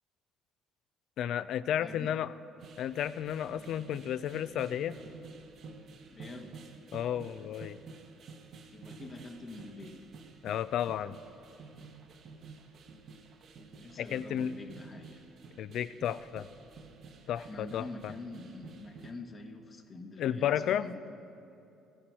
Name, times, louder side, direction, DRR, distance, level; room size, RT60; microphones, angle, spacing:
voice 1, 1.2-2.3 2.8-4.9 6.9-7.8 10.4-11.2 14.0-14.5 15.6-16.5 17.3-18.1 20.2-20.9, left 10 dB, 70° left, 15 dB, 0.3 m, -32 dB
voice 2, 1.8-2.2 6.1-6.6 8.7-10.0 13.8-15.2 17.3-21.1, left 2 dB, 35° left, 5 dB, 1.2 m, -45 dB
sound 1, 2.6-19.1, right 4 dB, 60° right, 0.9 m, -51 dB
14.0 x 8.5 x 4.6 m, 2.8 s
supercardioid pair, 75°, 0 cm